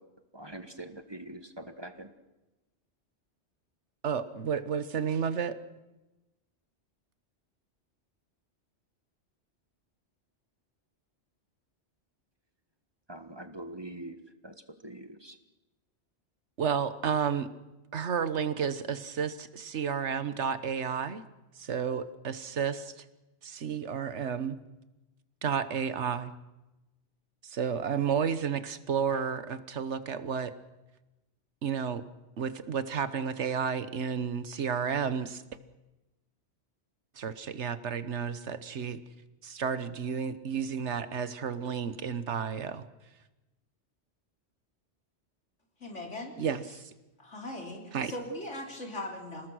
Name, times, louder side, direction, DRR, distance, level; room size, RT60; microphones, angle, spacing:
voice 1, 0.3-2.1 13.1-14.2 14.4-14.5 14.8-15.4, right 1 dB, 20° right, 9 dB, 1.4 m, -43 dB
voice 2, 4.0-5.6 16.6-17.5 17.9-21.2 21.6-23.1 23.4-24.6 25.4-26.3 27.4-30.5 31.6-32.0 32.4-35.4 37.2-39.0 39.4-42.9 46.4-46.9 47.9-48.1, right 7 dB, 75° right, 13 dB, 1.4 m, -31 dB
voice 3, 45.8-46.3 47.2-49.5, left 1 dB, 90° left, 2 dB, 4.0 m, -39 dB
28.0 x 19.0 x 6.3 m, 1.0 s
omnidirectional pair, 1.2 m